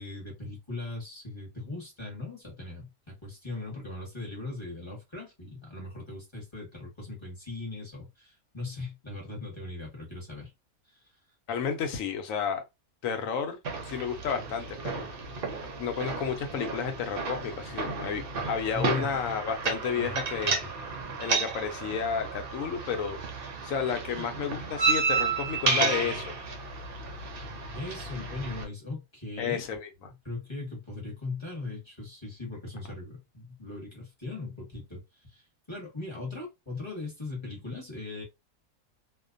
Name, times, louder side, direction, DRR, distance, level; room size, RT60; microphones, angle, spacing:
voice 1, 0.0-10.5 18.7-19.3 19.9-20.7 24.2-24.3 25.6-26.2 27.7-29.6 30.2-35.0 35.3-38.2, left 2 dB, 20° left, 0.9 m, -39 dB
voice 2, 11.5-12.6 13.0-13.6 13.8-15.1 15.8-18.2 18.5-20.6 21.2-23.2 23.6-26.2 29.4-29.9, left 6 dB, 70° left, 1.0 m, -31 dB
sound 1, 13.6-28.6, right 4 dB, 60° right, 0.6 m, -32 dB
2.5 x 2.2 x 2.4 m
omnidirectional pair, 1.5 m